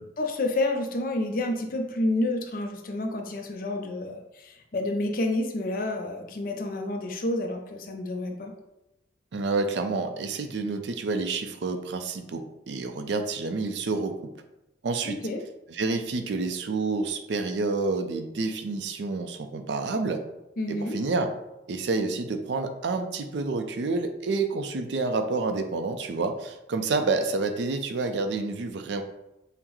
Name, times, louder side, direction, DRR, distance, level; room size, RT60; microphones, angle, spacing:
voice 1, 0.2-8.5 15.0-15.4 20.6-21.0, left 2 dB, 50° left, 4 dB, 0.5 m, -29 dB
voice 2, 9.3-14.3 14.8-15.2 15.7-20.2 20.7-21.3 21.7-29.0, right 3 dB, 75° right, 7 dB, 0.4 m, -29 dB
5.6 x 2.0 x 3.0 m, 0.93 s
head